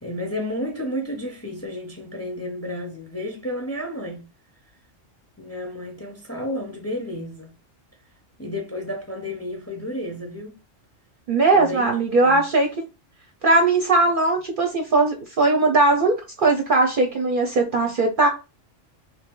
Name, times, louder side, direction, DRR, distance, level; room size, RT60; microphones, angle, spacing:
voice 1, 0.0-4.3 5.4-7.5 8.4-10.6 11.5-11.9 12.2-12.4, left 1 dB, 15° left, 0.6 m, -31 dB
voice 2, 11.3-12.7 13.4-18.3, right 2 dB, 55° right, 0.6 m, -19 dB
3.1 x 2.9 x 3.7 m
omnidirectional pair, 1.3 m